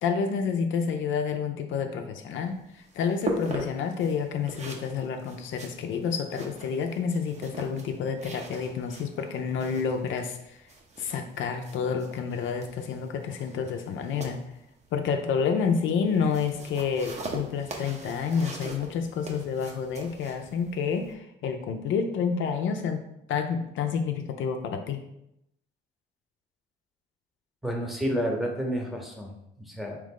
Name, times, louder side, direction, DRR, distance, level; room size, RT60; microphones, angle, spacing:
voice 1, 0.0-2.6 2.9-10.6 11.0-14.4 14.9-25.0, left 6 dB, 80° left, 5 dB, 0.5 m, -29 dB
sound 1, 2.3-21.1, right 2 dB, 35° right, 0.7 m, -41 dB
voice 2, 27.6-30.0, equal, ahead, -1 dB, 0.8 m, -30 dB
3.6 x 2.9 x 3.7 m, 0.81 s
cardioid pair, 90°, 20 cm